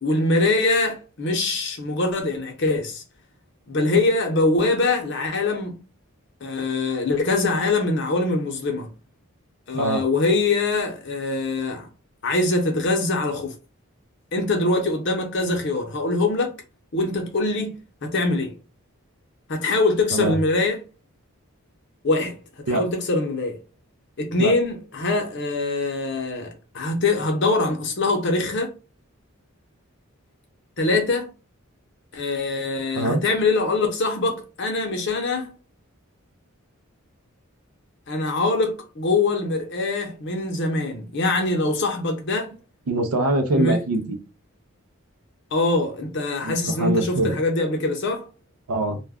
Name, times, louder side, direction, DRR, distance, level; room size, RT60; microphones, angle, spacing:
voice 1, 0.0-3.0 3.7-5.8 6.4-8.9 9.7-11.9 12.2-13.5 14.3-16.5 16.9-17.8 18.0-18.6 19.5-20.8 22.0-22.4 22.7-23.6 24.2-28.7 30.8-31.3 32.1-35.5 38.1-42.5 43.5-43.8 45.5-48.3, left 2 dB, 55° left, 0.6 m, -23 dB
voice 2, 42.9-44.2 46.4-47.4 48.7-49.0, right 1 dB, 85° right, 0.5 m, -23 dB
2.3 x 2.2 x 3.4 m
head